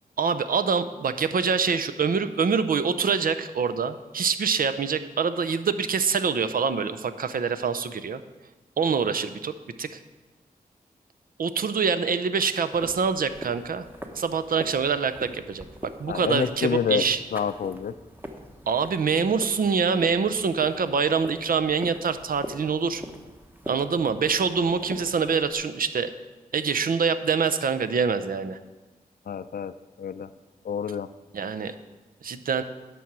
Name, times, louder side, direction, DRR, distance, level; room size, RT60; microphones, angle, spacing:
voice 1, 0.2-8.2 8.8-9.5 9.8-10.0 11.4-13.9 14.2-15.6 16.0-17.2 18.7-23.0 23.7-26.1 26.5-28.6 31.3-31.7 32.2-32.6, right 5 dB, 70° right, 11 dB, 0.6 m, -25 dB
sound 1, 12.7-25.5, equal, 15° right, 1.1 m, -43 dB
voice 2, 16.1-17.1 17.3-17.9 29.3-30.3 30.6-31.1, left 7 dB, 70° left, 13 dB, 0.4 m, -28 dB
10.0 x 6.2 x 6.0 m, 1.2 s
wide cardioid pair, 70°, 15 cm